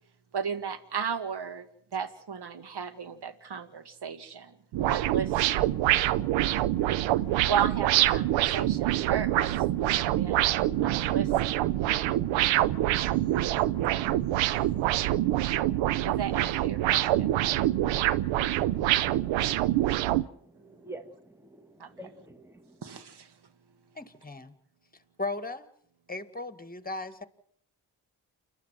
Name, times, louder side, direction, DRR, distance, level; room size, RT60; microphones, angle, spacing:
voice 1, 0.3-1.7 1.9-4.6 4.9-5.8 7.5-9.6 9.9-10.5 10.8-11.7 16.0-17.3 21.8-21.9 22.8-23.3, right 7 dB, 60° right, 11 dB, 2.2 m, -35 dB
sound 1, 4.7-20.2, right 14 dB, 85° right, 0.8 m, -25 dB
voice 2, 19.9-23.0, right 1 dB, 5° right, 7 dB, 1.9 m, -48 dB
voice 3, 24.0-24.5 25.2-25.7 26.1-27.2, left 2 dB, 20° left, 11 dB, 2.1 m, -36 dB
29.0 x 12.0 x 7.5 m, 0.66 s
supercardioid pair, 40°, 45 cm